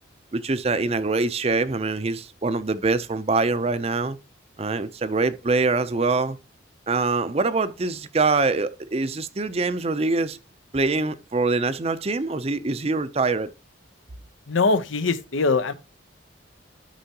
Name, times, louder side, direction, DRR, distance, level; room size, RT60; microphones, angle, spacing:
voice 1, 0.3-4.2 4.6-6.4 6.9-10.4 10.7-13.5, right 3 dB, 30° right, 0.5 m, -24 dB
voice 2, 14.5-15.7, left 3 dB, 85° left, 0.8 m, -22 dB
11.5 x 5.5 x 2.8 m
head